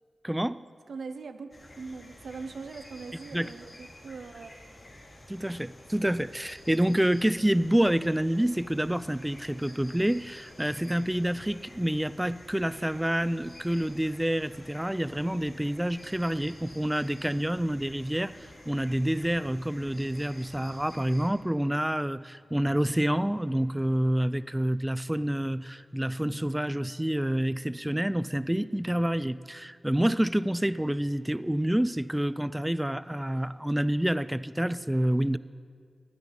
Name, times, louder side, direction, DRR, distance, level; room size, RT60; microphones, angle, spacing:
voice 1, 0.2-0.6 3.3-3.5 5.3-35.4, right 1 dB, 10° right, 16 dB, 0.4 m, -28 dB
voice 2, 0.9-1.5 1.8-4.5, right 4 dB, 80° right, 9 dB, 0.6 m, -41 dB
sound 1, 1.5-21.3, left 1 dB, 55° left, 3.5 m, -50 dB
16.0 x 10.5 x 4.0 m, 2.1 s
cardioid pair, 45°, 0 cm